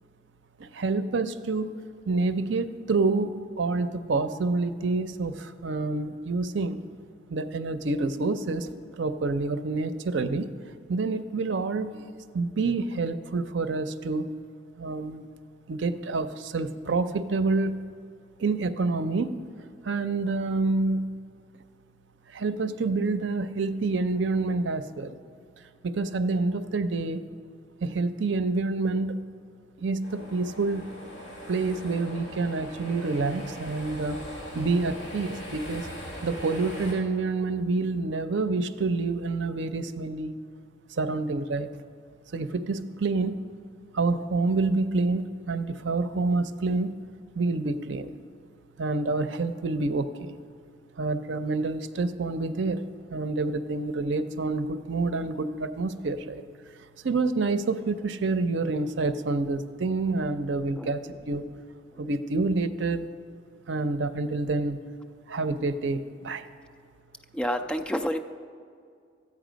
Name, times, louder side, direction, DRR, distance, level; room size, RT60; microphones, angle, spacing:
voice 1, 0.6-1.7 2.1-3.3 3.6-6.8 7.3-8.7 9.0-10.5 10.9-12.1 12.3-14.3 14.8-15.3 15.7-17.8 18.4-19.3 19.8-21.1 22.3-25.2 25.8-27.2 27.8-29.2 29.8-30.9 31.5-34.2 34.5-35.9 36.2-40.3 40.9-41.7 42.3-43.4 43.9-47.0 47.4-48.1 48.8-50.3 51.0-52.8 53.1-56.4 57.0-61.4 62.0-63.1 63.7-64.8 65.3-66.4, right 3 dB, 75° right, 11 dB, 0.6 m, -27 dB
sound 1, 30.0-36.9, equal, 40° left, 3.3 m, -40 dB
voice 2, 67.3-68.2, equal, 5° left, 6 dB, 0.4 m, -28 dB
13.0 x 8.6 x 5.1 m, 2.3 s
head